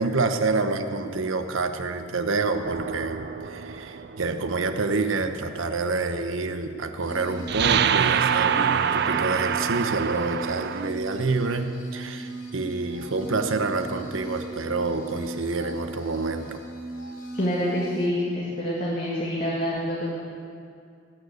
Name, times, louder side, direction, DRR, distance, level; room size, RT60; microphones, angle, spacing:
voice 1, 0.0-16.6, right 3 dB, 75° right, 7 dB, 1.0 m, -27 dB
sound 1, 2.6-4.5 7.5-10.9, right 8 dB, 50° right, 0.4 m, -25 dB
sound 2, 7.0-18.1, right 2 dB, 80° left, 2.7 m, -38 dB
voice 2, 17.3-20.2, equal, 45° left, -5 dB, 1.9 m, -27 dB
19.0 x 6.6 x 8.3 m, 2.4 s
head